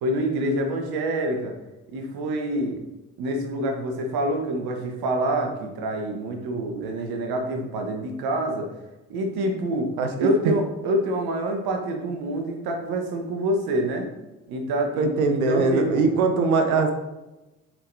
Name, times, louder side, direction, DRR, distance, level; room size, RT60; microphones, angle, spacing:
voice 1, 0.0-1.5 1.9-2.8 3.2-8.7 9.1-9.9 10.2-14.1 14.5-16.0, right 1 dB, 60° right, 3 dB, 1.3 m, -26 dB
voice 2, 10.0-10.5 15.0-16.9, right 4 dB, 80° right, 6 dB, 0.8 m, -21 dB
7.4 x 4.7 x 2.7 m, 1.1 s
figure-of-eight pair, 50°, 42 cm